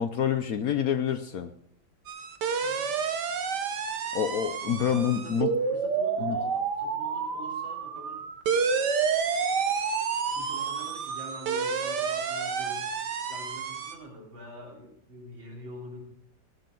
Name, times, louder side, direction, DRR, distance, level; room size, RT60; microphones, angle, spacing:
voice 1, 0.0-1.5 4.1-5.5 6.2-6.4, left 8 dB, 65° left, 10 dB, 0.9 m, -27 dB
sound 1, 2.1-14.0, right 6 dB, 65° right, 1.7 m, -29 dB
voice 2, 4.6-8.3 10.3-12.9 13.3-16.0, right 1 dB, 85° right, -1 dB, 4.2 m, -45 dB
16.5 x 12.0 x 3.8 m, 0.70 s
omnidirectional pair, 2.0 m